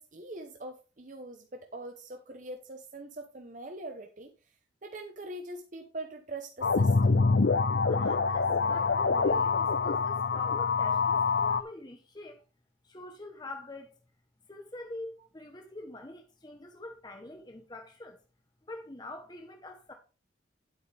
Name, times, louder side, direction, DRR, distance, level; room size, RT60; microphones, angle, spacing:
voice 1, 0.0-4.3 4.8-7.2, right 2 dB, 40° right, 0.9 m, -43 dB
sound 1, 6.6-11.6, left 4 dB, 65° left, 0.5 m, -25 dB
voice 2, 7.9-12.4 12.8-13.9 14.5-18.2 18.7-19.9, left 1 dB, 20° left, 0.9 m, -45 dB
9.2 x 8.4 x 3.4 m
head